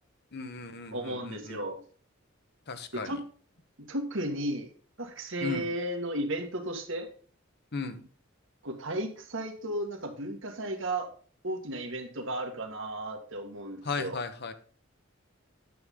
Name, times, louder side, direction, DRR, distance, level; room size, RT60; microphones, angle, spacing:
voice 1, 0.3-1.6 2.7-3.2 5.4-5.6 7.7-8.0 13.8-14.5, left 4 dB, 55° left, 9 dB, 1.1 m, -36 dB
voice 2, 0.9-1.8 2.9-3.2 3.9-4.7 5.0-7.1 8.6-11.1 11.4-14.2, right 1 dB, 65° right, 4 dB, 1.8 m, -34 dB
9.4 x 8.0 x 3.7 m, 0.43 s
head